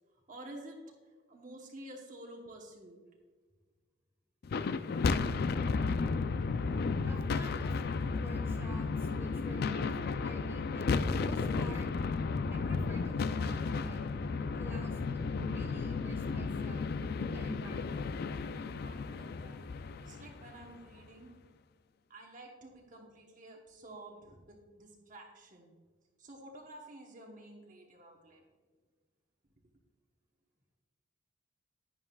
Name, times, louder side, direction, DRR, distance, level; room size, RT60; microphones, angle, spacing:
voice 1, 0.3-0.8 1.3-3.0 6.4-6.5 18.8-19.6 20.0-21.3 22.1-25.7 26.2-28.4, right 1 dB, 40° right, 0 dB, 1.1 m, -50 dB
sound 1, 4.4-20.8, left 4 dB, 50° left, 0.3 m, -33 dB
voice 2, 7.0-11.9 12.5-16.9 17.2-18.1 20.9-21.0, right 1 dB, 10° right, 1 dB, 1.3 m, -49 dB
11.0 x 9.7 x 2.4 m, 1.4 s
head